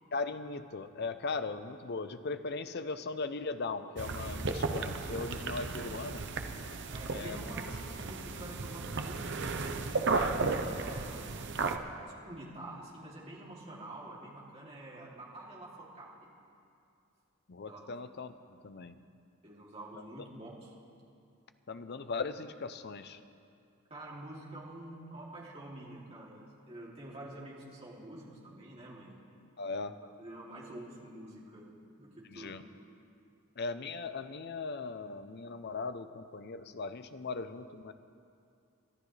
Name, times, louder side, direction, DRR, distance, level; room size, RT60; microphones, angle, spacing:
voice 1, 0.1-6.3 7.1-7.4 17.5-19.0 21.7-23.2 29.6-30.0 32.3-32.6 33.6-37.9, left 4 dB, 50° left, 11 dB, 0.5 m, -38 dB
sound 1, 4.0-11.8, right 3 dB, 55° right, 0.7 m, -34 dB
voice 2, 6.9-10.4 10.7-11.4 12.0-16.3 17.6-17.9 19.4-20.7 23.9-29.2 30.2-31.7 32.0-32.6, right 1 dB, 30° right, -5 dB, 2.8 m, -47 dB
29.5 x 12.0 x 3.3 m, 2.5 s
head